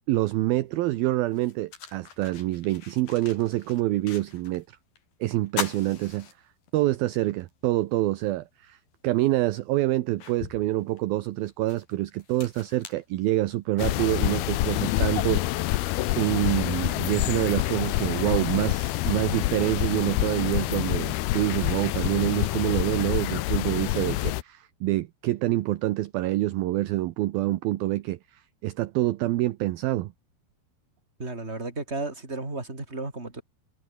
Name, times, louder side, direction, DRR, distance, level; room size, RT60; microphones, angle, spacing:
voice 1, 0.1-4.6 5.2-6.3 6.7-8.8 9.0-15.7 16.1-30.1, right 17 dB, 75° right, 2.5 m, -26 dB
sound 1, 0.7-0.8 1.3-4.7 5.0-5.1 5.5-6.9 7.4-7.5 8.9-9.0 9.6-13.8, left 7 dB, 60° left, 5.4 m, -40 dB
sound 2, 13.8-24.4, left 17 dB, 75° left, 2.7 m, -27 dB
voice 2, 31.2-33.4, right 2 dB, 15° right, 4.7 m, -33 dB
omnidirectional pair, 4.8 m